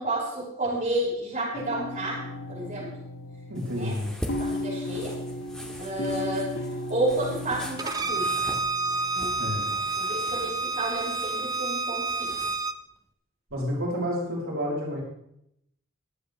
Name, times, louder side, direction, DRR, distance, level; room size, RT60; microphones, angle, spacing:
voice 1, 0.0-3.0 3.7-4.0 4.3-5.2 5.8-6.6 6.9-8.3 9.1-9.4 10.0-12.3, right 1 dB, 40° right, -6 dB, 6.4 m, -31 dB
sound 1, 1.5-10.6, left 1 dB, 85° left, 1.7 m, -36 dB
sound 2, 3.5-12.5, equal, 5° left, 1.8 m, -42 dB
voice 2, 3.5-4.1 9.4-9.7 13.5-15.0, equal, 80° right, -4 dB, 4.8 m, -30 dB
Bowed string instrument, 7.8-12.7, right 3 dB, 20° right, 0.6 m, -29 dB
22.5 x 8.9 x 3.3 m, 0.74 s
head